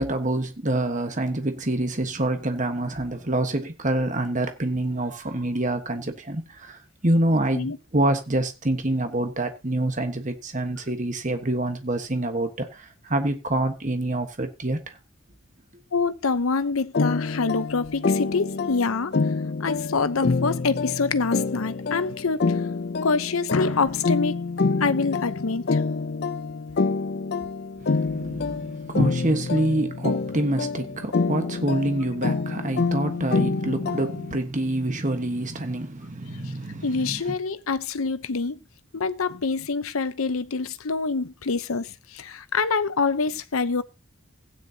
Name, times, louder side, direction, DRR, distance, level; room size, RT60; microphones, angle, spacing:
voice 1, 0.0-15.0 27.8-37.3, right 1 dB, 35° right, 1.3 m, -26 dB
voice 2, 15.9-19.1 19.6-22.5 23.0-24.4 24.8-25.8 36.8-38.6 38.9-43.8, left 4 dB, 85° left, 0.8 m, -26 dB
sound 1, 16.9-34.4, left 4 dB, 50° left, 0.5 m, -27 dB
15.5 x 9.7 x 2.8 m
head